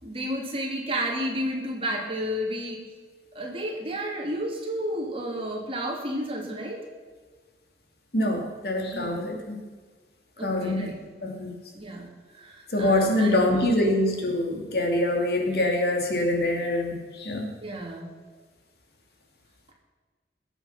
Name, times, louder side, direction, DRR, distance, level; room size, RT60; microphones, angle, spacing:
voice 1, 0.0-2.8 3.3-6.8 8.9-9.2 10.4-10.9 11.7-12.1 12.4-13.6 17.6-18.1, equal, 30° right, -1 dB, 2.8 m, -31 dB
voice 2, 8.1-9.6 10.4-10.9 11.2-11.5 12.7-17.5, left 1 dB, 60° left, 2 dB, 2.5 m, -25 dB
20.0 x 8.0 x 5.8 m, 1.5 s
head